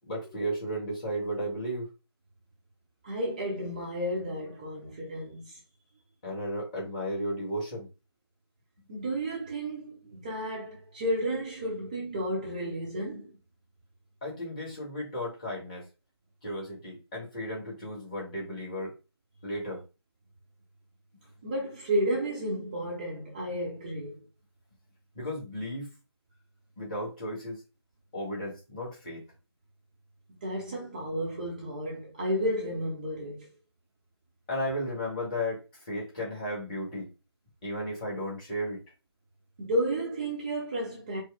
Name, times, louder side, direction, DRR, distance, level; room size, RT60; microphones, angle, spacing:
voice 1, 0.1-1.9 6.2-7.9 14.2-15.8 16.4-18.9 19.4-19.8 25.1-25.9 26.8-27.6 28.1-29.2 34.5-37.1 37.6-38.8, equal, 15° left, 1.2 m, -34 dB
voice 2, 3.0-5.6 8.9-13.4 21.4-24.2 30.4-33.5 39.6-41.2, equal, 20° right, 0.7 m, -32 dB
4.6 x 2.0 x 3.4 m
figure-of-eight pair, 155°, 14 cm